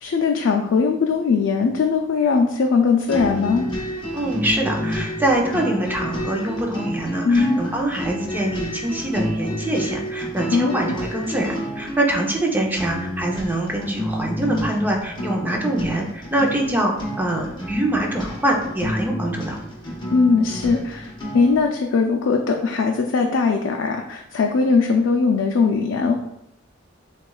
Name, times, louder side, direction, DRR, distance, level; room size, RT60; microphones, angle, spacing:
voice 1, 0.0-3.7 7.2-7.6 10.5-10.7 20.1-26.2, left 4 dB, 80° left, 2 dB, 0.4 m, -20 dB
sound 1, 3.1-21.6, equal, 25° left, 0.8 m, -30 dB
voice 2, 4.1-19.6, right 1 dB, 10° right, 0 dB, 0.5 m, -24 dB
7.0 x 2.3 x 2.3 m, 0.81 s
head